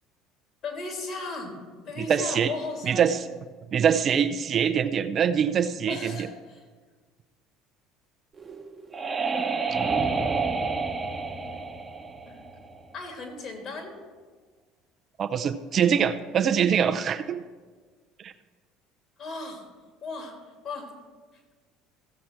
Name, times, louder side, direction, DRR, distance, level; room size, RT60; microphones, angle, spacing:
voice 1, 0.6-1.6 1.9-3.0 5.9-6.6 11.3-11.6 12.3-12.4 12.9-13.9 19.2-19.6 20.0-20.4 20.6-20.9, left 3 dB, 55° left, 2 dB, 2.8 m, -36 dB
voice 2, 2.0-2.5 2.8-3.2 3.7-6.1 15.2-17.4 18.2-18.3, right 7 dB, 45° right, 10 dB, 0.6 m, -24 dB
sound 1, 8.4-13.0, right 4 dB, 25° right, 1.0 m, -29 dB
15.0 x 7.3 x 4.5 m, 1.5 s
hypercardioid pair, 70°, 0 cm